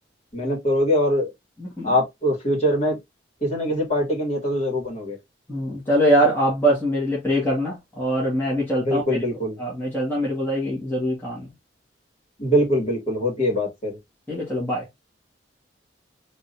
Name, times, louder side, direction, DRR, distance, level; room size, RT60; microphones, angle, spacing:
voice 1, 0.3-1.3 1.8-3.0 3.4-5.2 8.8-9.6 12.4-14.0, equal, 40° left, 2.7 m, -23 dB
voice 2, 1.6-1.9 5.5-9.2 9.6-11.5 14.3-14.9, equal, 10° left, 1.7 m, -23 dB
3.9 x 3.5 x 2.7 m
head